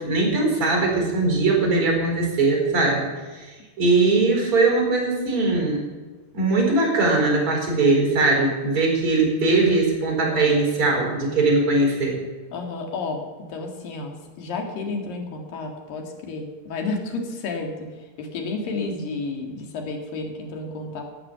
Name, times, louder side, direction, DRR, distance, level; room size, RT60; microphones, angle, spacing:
voice 1, 0.0-3.1 3.3-3.5 3.8-5.9 6.3-12.2, right 3 dB, 40° right, 0 dB, 5.3 m, -20 dB
voice 2, 12.5-13.2 13.5-17.9 18.2-21.0, left 3 dB, 90° left, 2 dB, 3.7 m, -31 dB
15.0 x 10.0 x 6.9 m, 1.3 s
omnidirectional pair, 3.9 m